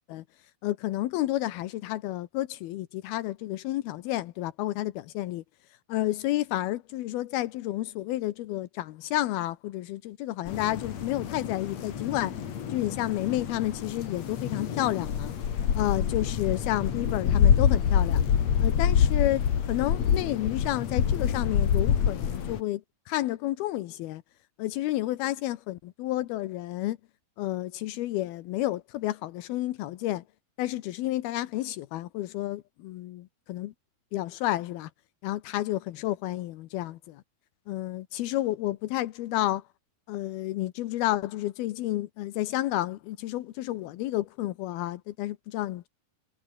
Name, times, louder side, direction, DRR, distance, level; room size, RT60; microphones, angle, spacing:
voice 1, 0.6-5.4 5.9-12.3 12.7-15.3 15.8-18.2 18.6-24.2 24.6-27.0 27.4-30.2 30.6-33.7 34.1-34.9 35.2-37.2 37.7-39.6 40.1-45.9, left 15 dB, 85° left, 2.8 m, -31 dB
sound 1, 10.5-22.6, left 8 dB, 50° left, 3.0 m, -26 dB
omnidirectional pair, 4.5 m